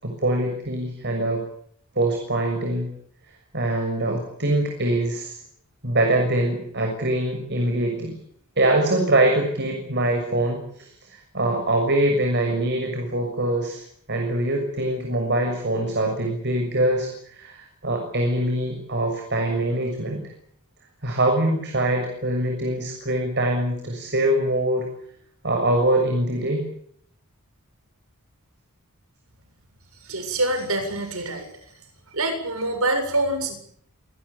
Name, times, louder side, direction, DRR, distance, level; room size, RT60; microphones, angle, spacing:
voice 1, 0.0-1.4 1.9-2.9 3.5-5.4 5.8-8.2 8.6-20.3 21.0-24.9 25.4-26.6, right 1 dB, 50° right, 3 dB, 6.8 m, -23 dB
voice 2, 30.1-31.5 32.1-33.6, right 2 dB, 70° right, 7 dB, 7.4 m, -25 dB
27.0 x 20.0 x 8.7 m, 0.66 s
head